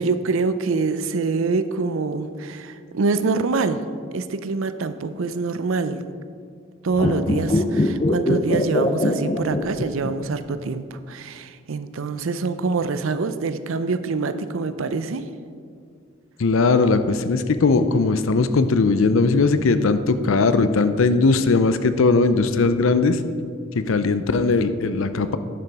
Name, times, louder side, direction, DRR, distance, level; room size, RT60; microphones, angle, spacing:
voice 1, 0.0-3.8 4.1-6.1 6.8-15.3, right 4 dB, 80° right, 11 dB, 0.5 m, -25 dB
sound 1, 6.9-10.3 10.6-10.7, left 1 dB, 30° left, 0.5 m, -22 dB
voice 2, 16.4-23.2 23.8-25.4, left 3 dB, 80° left, 11 dB, 0.5 m, -19 dB
10.0 x 7.0 x 4.7 m, 2.1 s
head